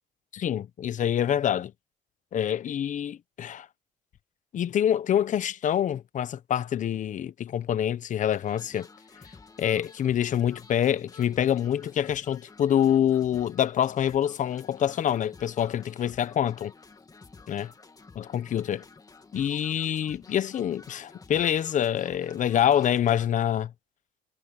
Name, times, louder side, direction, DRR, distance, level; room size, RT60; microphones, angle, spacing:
voice 1, 0.3-1.7 2.3-3.7 4.5-8.9 9.6-16.7 17.5-17.7 18.2-18.8 19.3-23.7, left 10 dB, 50° left, 0.9 m, -26 dB
sound 1, 8.3-23.3, left 4 dB, 20° left, 2.4 m, -51 dB
cardioid pair, 110°, 17 cm